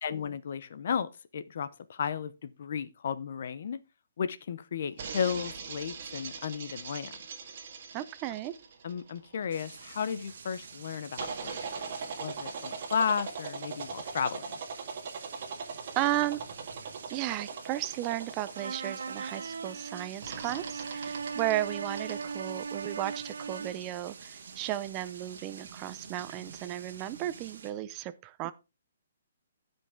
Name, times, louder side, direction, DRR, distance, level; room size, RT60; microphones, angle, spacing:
voice 1, 0.0-3.8 4.2-7.2 8.8-14.6, left 7 dB, 40° left, 0.7 m, -34 dB
sound 1, 5.0-9.9 11.2-19.6 20.2-23.5, right 5 dB, 35° right, 1.7 m, -41 dB
voice 2, 7.9-8.5 16.0-16.4 17.1-28.5, right 15 dB, 15° right, 0.5 m, -34 dB
sound 2, 9.5-27.7, right 5 dB, 50° right, 1.7 m, -49 dB
sound 3, 18.5-23.9, right 5 dB, 90° right, 0.5 m, -38 dB
15.5 x 5.3 x 3.6 m
hypercardioid pair, 180°, 0 cm